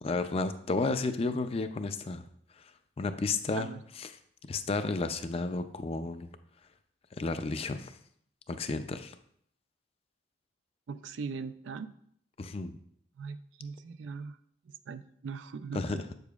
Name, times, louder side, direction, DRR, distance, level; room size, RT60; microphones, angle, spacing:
voice 1, 0.0-2.3 3.0-3.7 4.0-4.1 4.5-6.3 7.2-7.9 8.5-9.2 12.4-12.8 15.7-16.0, left 3 dB, 30° left, 10 dB, 0.4 m, -32 dB
voice 2, 10.9-11.9 13.2-14.4 14.6-16.0, right 5 dB, 80° right, 12 dB, 0.4 m, -40 dB
8.1 x 6.7 x 2.4 m, 0.66 s
head